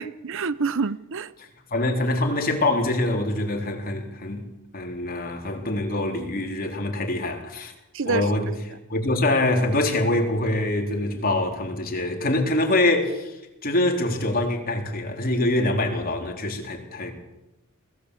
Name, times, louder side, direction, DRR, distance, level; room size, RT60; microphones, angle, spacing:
voice 1, 0.0-1.3 7.9-8.3, right 4 dB, 60° right, 0.7 m, -27 dB
voice 2, 1.4-4.4 4.7-7.7 8.1-8.5 8.9-13.4 13.6-17.1, left 1 dB, 45° left, 3.9 m, -24 dB
22.0 x 16.5 x 8.4 m
head